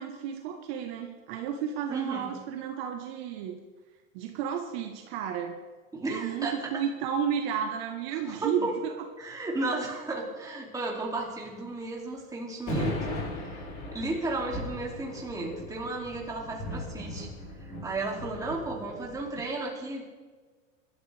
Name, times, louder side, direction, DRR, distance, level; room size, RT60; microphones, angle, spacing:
voice 1, 0.0-3.6 4.1-5.6 6.1-8.9, right 8 dB, 50° right, 3 dB, 1.3 m, -32 dB
voice 2, 1.9-2.4 5.9-6.6 8.1-8.7 9.2-17.3 17.6-20.0, right 2 dB, 10° right, -2 dB, 2.6 m, -34 dB
sound 1, 12.7-19.4, left 1 dB, 35° left, 5.0 m, -37 dB
21.5 x 12.5 x 3.4 m, 1.4 s
supercardioid pair, 160°, 39 cm